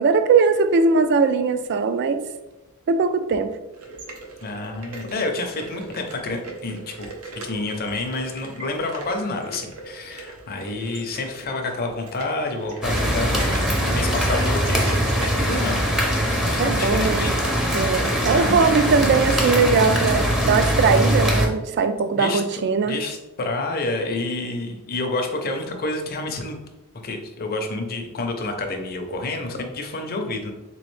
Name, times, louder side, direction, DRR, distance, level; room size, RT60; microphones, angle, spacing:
voice 1, 0.0-2.2 2.9-3.5 16.6-17.3 17.7-23.0, right 5 dB, 50° right, 10 dB, 0.3 m, -20 dB
sound 1, 3.7-15.3, right 3 dB, 85° right, 0.8 m, -39 dB
voice 2, 4.4-7.1 7.3-15.9 16.6-17.3 18.3-19.1 22.1-22.4 22.8-26.6 27.0-30.5, left 2 dB, 45° left, 4 dB, 0.6 m, -29 dB
sound 2, 12.8-21.5, equal, ahead, 0.6 m, -22 dB
3.7 x 3.0 x 3.1 m, 1.0 s
head